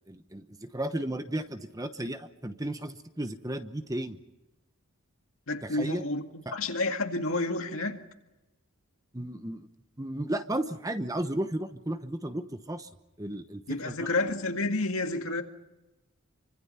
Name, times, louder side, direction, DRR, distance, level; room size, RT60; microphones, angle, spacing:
voice 1, 0.1-4.2 5.6-6.0 6.5-6.6 9.1-9.7 10.0-12.9 13.2-14.1, right 1 dB, 15° right, 1.0 m, -34 dB
voice 2, 5.5-8.0 13.7-15.4, left 2 dB, 65° left, 2.0 m, -30 dB
27.0 x 25.0 x 5.7 m
head